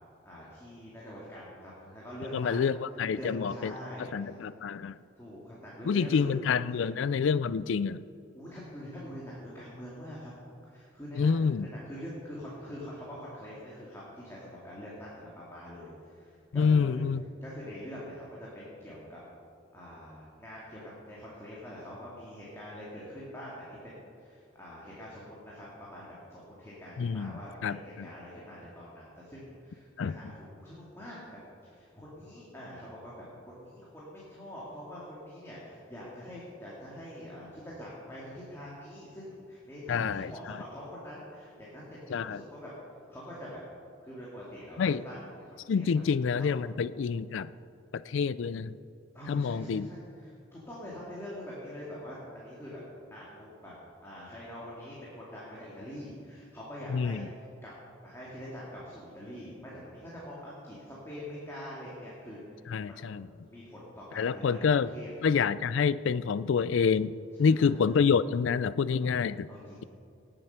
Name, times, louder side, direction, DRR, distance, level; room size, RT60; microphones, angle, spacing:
voice 1, 0.2-2.6 3.1-4.5 5.2-6.3 6.6-6.9 8.3-10.3 10.7-17.0 17.4-19.2 19.7-42.7 43.1-43.6 44.0-46.0 46.4-46.6 49.1-52.8 53.1-53.7 54.0-57.7 58.0-63.1 63.4-65.1 67.4-68.0 69.5-69.8, equal, 15° left, -7 dB, 2.2 m, -44 dB
voice 2, 2.3-3.7 4.0-5.0 5.9-8.0 11.2-11.7 16.5-17.2 27.0-27.3 27.6-28.1 30.0-30.2 39.9-40.6 42.1-42.4 44.8-45.0 45.7-47.5 47.9-48.7 49.3-49.9 56.9-57.3 62.7-63.3 64.2-64.9 65.2-69.5, left 6 dB, 75° left, 17 dB, 0.4 m, -27 dB
19.0 x 7.7 x 5.8 m, 2.6 s
head